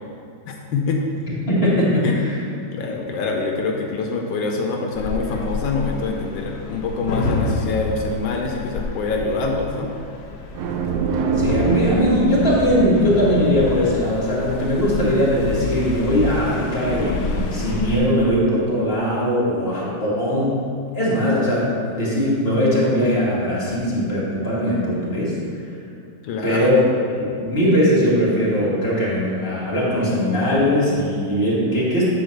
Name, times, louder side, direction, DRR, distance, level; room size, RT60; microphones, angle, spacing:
voice 1, 0.5-1.0 2.0-2.2 2.5-9.9 26.2-26.8, left 4 dB, 75° left, 1 dB, 1.4 m, -25 dB
voice 2, 1.5-2.3 11.4-20.6 20.9-25.4 26.4-26.8 27.2-32.1, equal, 30° left, -7 dB, 2.1 m, -20 dB
sound 1, 5.0-18.0, left 3 dB, 60° left, 1.1 m, -29 dB
sound 2, 10.5-14.2, right 5 dB, 70° right, 1.0 m, -25 dB
8.0 x 3.9 x 6.5 m, 2.4 s
omnidirectional pair, 2.1 m